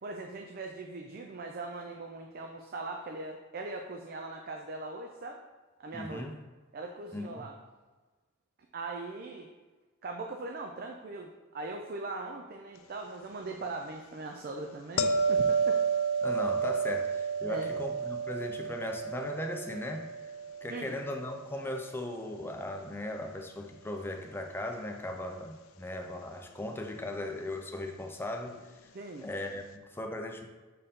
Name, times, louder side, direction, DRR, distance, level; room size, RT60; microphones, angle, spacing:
voice 1, 0.0-5.4 5.8-6.3 6.7-7.5 8.7-9.5 10.0-16.0 17.5-17.7 20.7-21.0 28.9-29.3, right 3 dB, 45° right, 3 dB, 0.4 m, -40 dB
voice 2, 5.9-6.3 7.1-7.4 16.2-20.1 20.6-28.6 29.2-30.5, left 1 dB, 10° left, 3 dB, 0.5 m, -38 dB
sound 1, 15.0-22.0 27.2-27.4, right 5 dB, 75° left, 0.4 m, -31 dB
6.6 x 4.4 x 3.7 m, 1.3 s
head